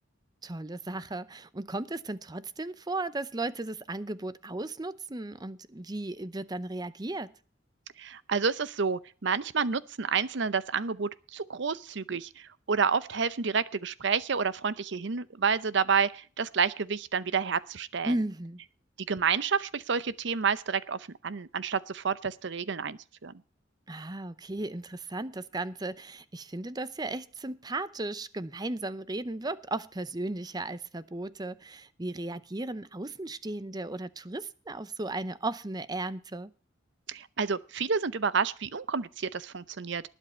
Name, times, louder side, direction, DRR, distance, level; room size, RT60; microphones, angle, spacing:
voice 1, 0.4-7.3 18.0-18.6 23.9-36.5, right 2 dB, 20° right, 0.6 m, -35 dB
voice 2, 8.0-18.1 19.1-23.3 37.1-40.0, right 5 dB, 65° right, 0.7 m, -29 dB
19.5 x 8.2 x 4.3 m
head